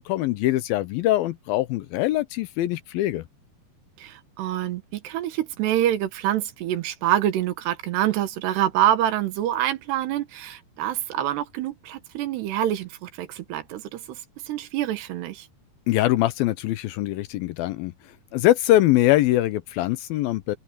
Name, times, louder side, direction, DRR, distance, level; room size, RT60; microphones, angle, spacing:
voice 1, 0.0-3.2 15.9-17.9 18.3-20.6, left 15 dB, 75° left, 2.3 m, -22 dB
voice 2, 4.0-15.5, right 12 dB, 90° right, 3.5 m, -26 dB
omnidirectional pair, 4.6 m